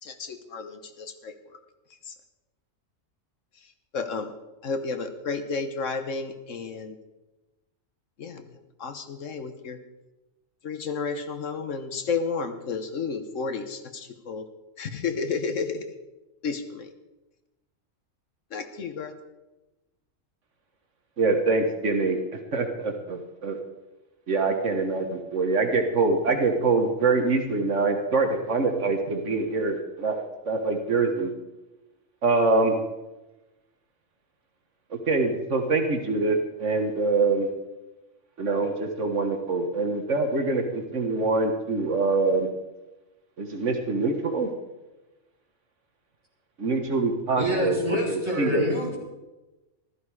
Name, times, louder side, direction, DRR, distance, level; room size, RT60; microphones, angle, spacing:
voice 1, 0.0-1.3 2.0-2.1 3.6-4.3 4.6-7.0 8.2-8.5 8.8-9.8 10.6-14.5 14.8-15.9 16.4-16.9 18.5-19.1, left 5 dB, 75° left, 8 dB, 1.4 m, -32 dB
voice 2, 21.2-23.6 24.3-31.3 32.2-32.8 34.9-37.5 38.4-42.5 43.4-44.5 46.6-48.7, right 3 dB, 70° right, 4 dB, 1.7 m, -25 dB
voice 3, 47.4-49.0, equal, 20° right, -4 dB, 4.4 m, -27 dB
15.0 x 13.5 x 4.8 m, 1.1 s
omnidirectional pair, 1.3 m